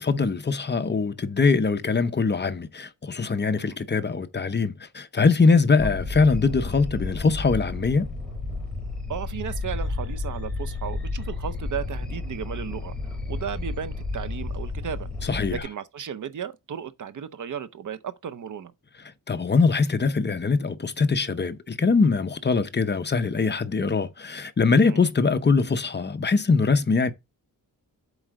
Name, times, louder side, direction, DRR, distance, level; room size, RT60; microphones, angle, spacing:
voice 1, 0.0-8.1 15.3-15.6 19.3-27.1, left 4 dB, 30° left, 0.7 m, -22 dB
sound 1, 5.8-15.6, left 3 dB, ahead, 2.9 m, -32 dB
voice 2, 9.1-12.9 13.3-18.7 24.8-25.0, right 8 dB, 60° right, 0.7 m, -35 dB
8.0 x 4.6 x 4.9 m
wide cardioid pair, 165°, 35 cm